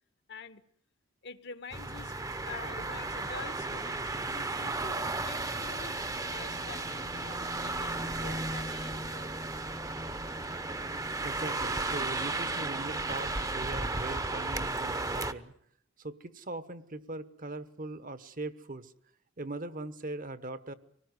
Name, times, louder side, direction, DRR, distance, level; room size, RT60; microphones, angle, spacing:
voice 1, 0.3-0.6 1.2-2.1 2.4-4.0 4.3-9.5, left 5 dB, 60° left, 12 dB, 1.3 m, -47 dB
sound 1, 1.7-15.3, right 2 dB, 15° right, 0.9 m, -34 dB
voice 2, 11.2-15.5 16.0-18.9 19.4-20.7, right 2 dB, 45° right, 13 dB, 1.2 m, -40 dB
25.5 x 19.5 x 9.5 m, 0.67 s
head